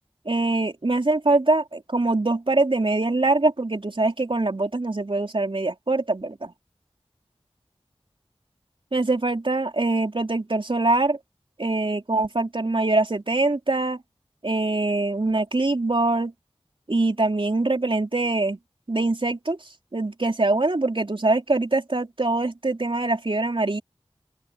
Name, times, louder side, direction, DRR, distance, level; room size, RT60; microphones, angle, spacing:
voice 1, 0.3-6.5 8.9-11.2 11.6-14.0 14.4-16.3 16.9-18.6 18.9-19.6 19.9-23.8, right 2 dB, 55° right, 3.8 m, -23 dB
open air
wide cardioid pair, 40°, 10 cm